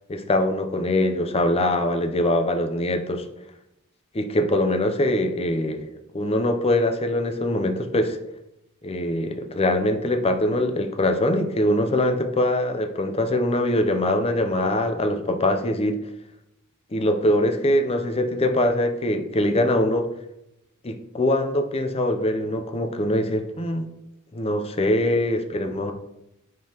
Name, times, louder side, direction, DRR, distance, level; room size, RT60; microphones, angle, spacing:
voice 1, 0.1-3.3 4.1-5.9 6.1-8.2 8.8-16.0 16.9-20.1 20.8-23.9 24.3-25.9, left 1 dB, 25° left, 6 dB, 0.5 m, -23 dB
10.5 x 3.8 x 2.9 m, 0.87 s
head